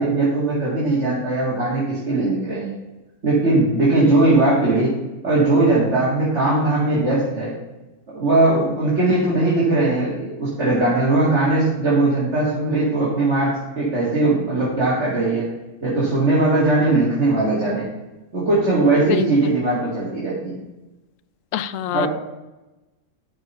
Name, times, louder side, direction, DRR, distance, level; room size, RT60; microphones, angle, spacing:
voice 1, 0.0-2.7 3.2-4.9 5.2-7.5 8.1-15.5 15.8-17.9 18.3-20.6 21.9-22.1, right 2 dB, 55° right, -8 dB, 2.6 m, -19 dB
voice 2, 19.1-19.5 21.5-22.1, left 10 dB, 75° left, 15 dB, 0.9 m, -25 dB
12.0 x 4.6 x 5.6 m, 1.1 s
omnidirectional pair, 1.4 m